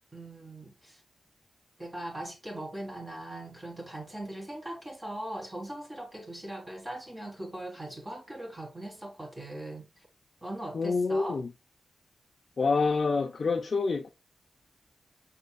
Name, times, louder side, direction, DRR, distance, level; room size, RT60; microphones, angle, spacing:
voice 1, 0.1-1.0 1.8-10.1 10.4-11.4, right 1 dB, 20° right, 1.5 m, -40 dB
voice 2, 10.7-11.5 12.6-14.1, left 4 dB, 50° left, 0.6 m, -27 dB
5.8 x 4.1 x 2.2 m
wide cardioid pair, 100°, 0 cm